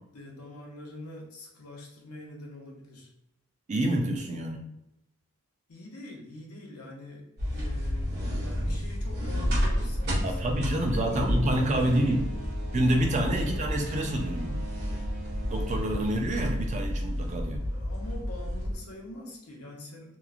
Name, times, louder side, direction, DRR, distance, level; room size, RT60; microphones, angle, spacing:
voice 1, 0.1-3.1 5.7-12.4 17.7-20.2, left 2 dB, 90° left, -1 dB, 0.7 m, -44 dB
voice 2, 3.7-4.7 10.2-12.3 12.7-14.7 15.5-17.6, right 1 dB, 35° right, 2 dB, 0.3 m, -27 dB
sound 1, 7.4-18.7, equal, 50° right, 0.9 m, -31 dB
sound 2, 11.1-17.1, right 3 dB, 90° right, 0.8 m, -44 dB
2.9 x 2.0 x 2.3 m, 0.85 s
head